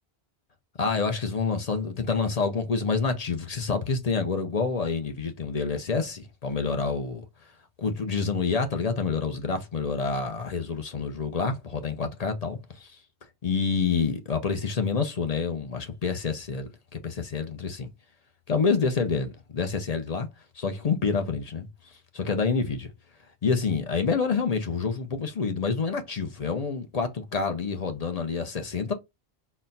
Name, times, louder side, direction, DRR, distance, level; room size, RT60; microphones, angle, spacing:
voice 1, 0.8-7.2 7.8-13.0 13.4-17.9 18.5-20.3 20.5-22.9 23.4-28.9, left 5 dB, 45° left, 0.6 m, -28 dB
4.1 x 2.1 x 4.0 m
omnidirectional pair, 1.1 m